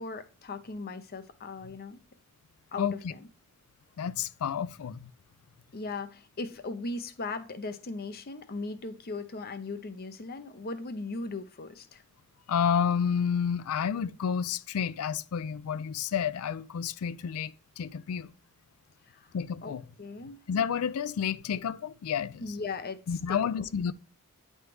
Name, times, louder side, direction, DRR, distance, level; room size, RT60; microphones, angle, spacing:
voice 1, 0.0-2.0 2.7-3.3 5.7-12.0 19.1-19.3 19.6-20.4 22.4-23.6, left 3 dB, 45° left, 0.7 m, -38 dB
voice 2, 2.8-3.1 4.0-5.1 12.5-18.3 19.3-19.8 20.5-22.6 23.1-23.9, left 7 dB, 70° left, 0.4 m, -30 dB
9.5 x 3.2 x 3.1 m
head